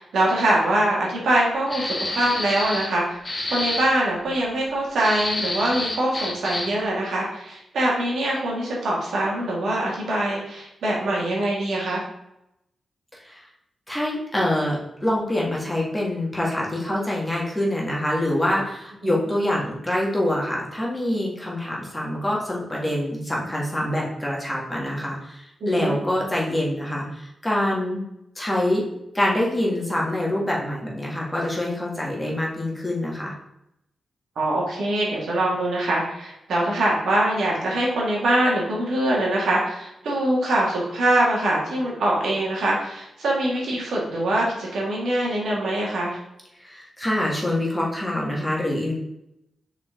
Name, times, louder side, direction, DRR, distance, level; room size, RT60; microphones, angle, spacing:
voice 1, 0.0-3.2 3.5-12.0 19.0-19.2 25.6-25.9 34.4-46.2, right 1 dB, 80° right, -4 dB, 2.2 m, -23 dB
sound 1, 1.7-2.9 3.2-3.9 5.0-6.8, left 2 dB, 30° left, 1.3 m, -28 dB
voice 2, 13.9-28.0 28.4-28.9 29.1-33.3 46.6-48.9, left 1 dB, 10° left, -4 dB, 2.0 m, -25 dB
5.8 x 4.8 x 3.9 m, 0.83 s
cardioid pair, 85°, 0 cm